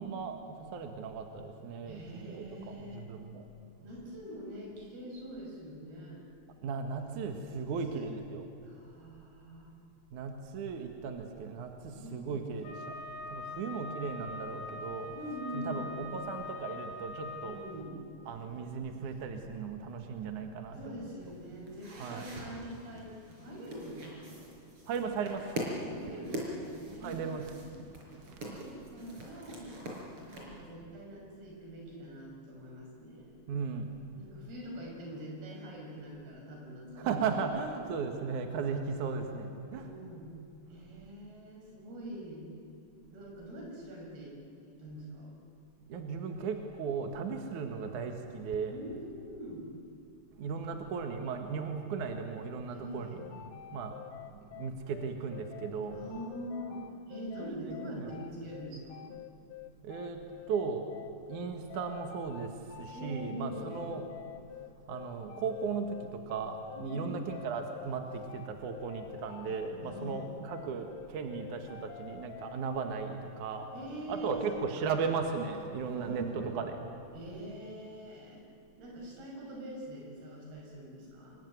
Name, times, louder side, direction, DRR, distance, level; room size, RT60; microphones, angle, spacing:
voice 1, 0.0-3.4 6.6-8.5 10.1-12.8 13.3-15.1 15.5-17.6 18.3-21.1 21.9-22.3 24.9-25.4 27.0-27.6 33.5-34.1 37.0-39.9 45.9-48.8 50.4-53.2 53.7-54.0 54.6-56.0 57.4-58.2 59.8-60.2 60.5-60.9 61.3-62.5 62.8-64.1 64.9-73.7 74.1-76.8, right 5 dB, 60° right, 5 dB, 2.8 m, -36 dB
voice 2, 1.9-3.1 3.8-6.3 7.9-8.1 8.6-9.7 11.9-12.2 12.5-12.6 13.5-13.7 15.1-16.0 17.4-18.0 20.8-24.4 25.8-27.6 28.6-29.8 30.4-33.4 34.1-37.4 37.7-37.8 39.7-40.3 40.7-42.4 43.1-44.4 44.6-45.3 48.7-49.8 52.7-53.2 55.9-59.1 62.9-63.8 66.7-67.3 69.5-70.4 73.7-75.0 75.9-76.6 77.1-78.4 78.8-81.4, equal, 80° right, -1 dB, 7.6 m, -44 dB
Wind instrument woodwind instrument, 12.6-17.8, left 3 dB, 60° left, 3.2 m, -43 dB
sound 1, 21.2-30.4, right 1 dB, 35° right, 5.6 m, -43 dB
sound 2, 53.2-72.6, left 14 dB, 85° left, 2.8 m, -48 dB
26.5 x 22.0 x 9.6 m, 2.6 s
omnidirectional pair, 4.4 m